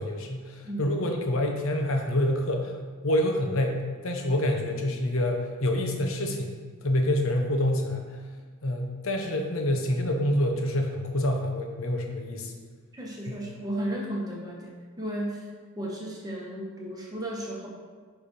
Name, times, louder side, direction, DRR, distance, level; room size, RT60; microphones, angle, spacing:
voice 1, 0.0-2.7 3.0-8.0 8.6-12.5 13.3-13.4, left 1 dB, 65° left, 3 dB, 0.9 m, -27 dB
voice 2, 12.9-15.5 15.8-17.7, right 1 dB, 15° right, -3 dB, 1.2 m, -34 dB
8.9 x 3.5 x 5.3 m, 1.5 s
head